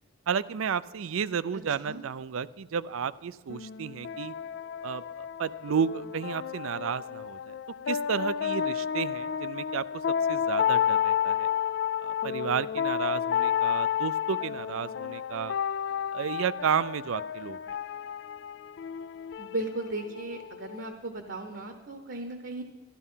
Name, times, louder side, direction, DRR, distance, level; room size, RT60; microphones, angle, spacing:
voice 1, 0.3-4.3 4.8-7.5 7.9-11.5 12.0-15.6 16.1-17.6, right 7 dB, 80° right, 18 dB, 0.4 m, -32 dB
sound 1, 3.5-20.9, left 8 dB, 55° left, 0.3 m, -31 dB
voice 2, 19.4-22.6, right 2 dB, 55° right, 7 dB, 0.9 m, -36 dB
12.5 x 12.0 x 5.6 m, 1.4 s
head